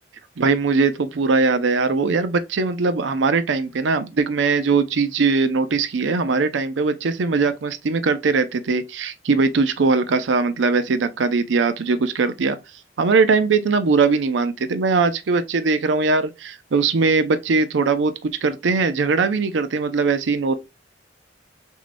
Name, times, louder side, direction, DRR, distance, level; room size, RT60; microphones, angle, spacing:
voice 1, 0.4-12.6 13.0-20.6, right 4 dB, 75° right, 0.5 m, -20 dB
6.1 x 2.8 x 2.6 m
head